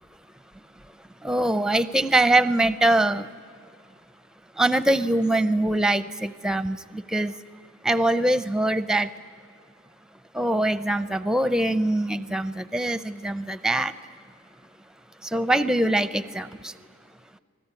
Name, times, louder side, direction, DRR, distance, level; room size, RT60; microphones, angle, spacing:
voice 1, 1.2-3.3 4.6-7.3 7.8-9.1 10.3-13.9 15.3-16.7, right 1 dB, 5° right, 14 dB, 0.6 m, -23 dB
29.5 x 20.5 x 9.7 m, 2.2 s
head